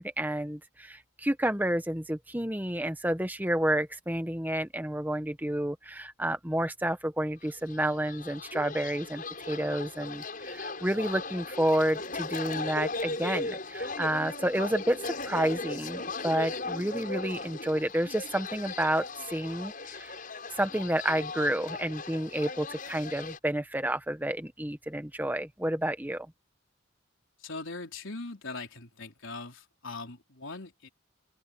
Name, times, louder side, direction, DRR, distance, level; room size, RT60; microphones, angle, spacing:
voice 1, 0.0-20.2 20.5-26.3, right 1 dB, 10° right, 1.1 m, -30 dB
sound 1, 7.6-23.4, left 3 dB, 40° left, 7.8 m, -37 dB
voice 2, 27.4-30.9, left 3 dB, 65° left, 3.9 m, -41 dB
open air
head